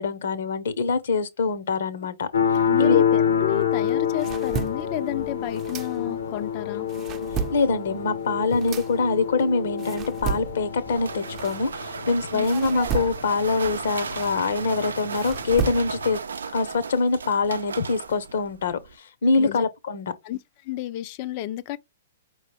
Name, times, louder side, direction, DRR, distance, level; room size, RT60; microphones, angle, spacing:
voice 1, 0.0-2.3 2.8-3.0 7.5-16.2 16.5-20.1, left 4 dB, 70° left, 0.9 m, -24 dB
sound 1, 2.3-16.2, left 8 dB, 90° left, 1.3 m, -28 dB
voice 2, 2.7-6.9 12.3-12.5 19.4-19.7 20.2-21.8, left 13 dB, 40° left, 0.5 m, -31 dB
sound 2, 3.8-6.4 6.7-12.0 12.4-16.2, right 7 dB, 30° right, 0.6 m, -34 dB
sound 3, 10.2-19.0, right 5 dB, 80° right, 0.5 m, -36 dB
5.1 x 3.1 x 3.3 m
hypercardioid pair, 125°, 0 cm